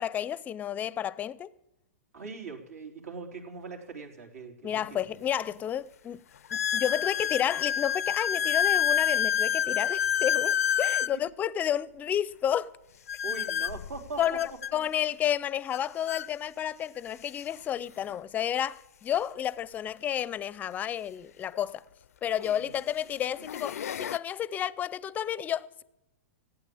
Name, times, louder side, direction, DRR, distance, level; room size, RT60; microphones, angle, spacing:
voice 1, 0.0-1.5 4.6-6.2 6.5-12.7 14.2-21.8 22.2-25.8, left 10 dB, 20° left, 0.5 m, -31 dB
voice 2, 2.1-5.0 13.2-14.4 14.7-14.8 22.5-22.8, right 4 dB, 80° right, 3.6 m, -41 dB
sound 1, 4.8-4.9 5.5-5.6 6.5-11.2 13.1-14.7 15.7-15.8 16.1-16.3 17.1-17.2 19.4-19.5 21.5-21.6 22.4-22.7 23.2-24.2, left 8 dB, 80° left, 0.4 m, -28 dB
15.0 x 9.0 x 8.5 m
hypercardioid pair, 130°, 8 cm